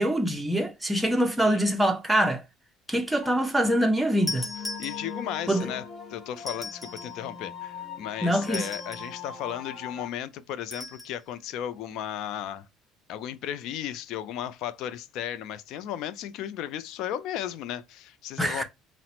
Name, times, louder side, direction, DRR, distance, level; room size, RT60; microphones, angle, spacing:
voice 1, 0.0-2.4 2.9-4.5 5.5-5.7 8.2-8.7 18.4-18.6, right 1 dB, 5° right, 0.6 m, -24 dB
sound 1, 3.2-10.1, left 6 dB, 40° left, 1.0 m, -41 dB
sound 2, 4.3-5.4 6.4-7.2 8.4-9.2 10.7-11.2, left 3 dB, 15° left, 1.2 m, -37 dB
voice 2, 4.8-5.8 6.1-12.7 13.1-18.6, left 10 dB, 70° left, 0.4 m, -35 dB
4.0 x 2.0 x 2.8 m
supercardioid pair, 95°, 0 cm